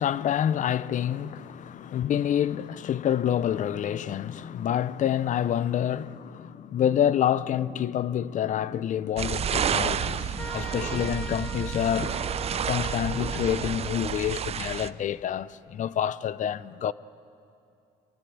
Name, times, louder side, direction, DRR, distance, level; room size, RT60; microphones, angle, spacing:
voice 1, 0.0-12.3 12.7-16.9, left 10 dB, 50° left, 0.5 m, -27 dB
sound 1, 9.2-14.9, right 8 dB, 35° right, 0.5 m, -30 dB
sound 2, 10.4-14.0, left 2 dB, 5° left, 1.3 m, -41 dB
24.5 x 17.0 x 8.6 m
cardioid pair, 110°, 17 cm